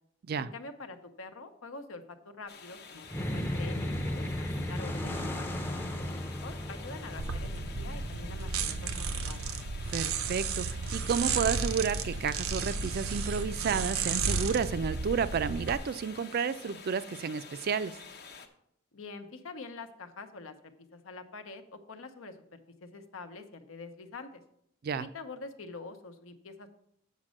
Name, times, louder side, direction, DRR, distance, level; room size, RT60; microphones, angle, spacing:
voice 1, 0.4-9.4 18.9-20.5 20.9-24.4 24.9-26.7, left 3 dB, 80° left, 8 dB, 0.8 m, -46 dB
sound 1, 2.5-18.5, left 5 dB, 50° left, 0.8 m, -49 dB
sound 2, 3.0-9.7, left 1 dB, 10° left, 0.6 m, -36 dB
sound 3, 7.2-15.8, right 5 dB, 90° right, 0.7 m, -33 dB
voice 2, 9.9-18.0 24.8-25.1, right 6 dB, 50° right, 14 dB, 0.4 m, -31 dB
7.4 x 5.2 x 6.3 m, 0.74 s
head